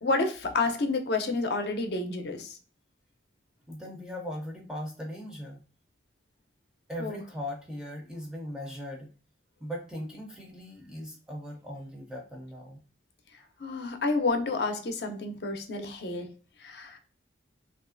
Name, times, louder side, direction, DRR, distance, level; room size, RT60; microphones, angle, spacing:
voice 1, 0.0-2.5 7.0-7.2 13.6-16.3 16.6-17.0, left 3 dB, 60° left, 6 dB, 0.5 m, -29 dB
voice 2, 3.7-5.6 6.9-9.1 9.6-12.8 13.4-13.5, equal, 5° right, -1 dB, 0.4 m, -39 dB
3.0 x 2.4 x 2.4 m, 0.38 s
head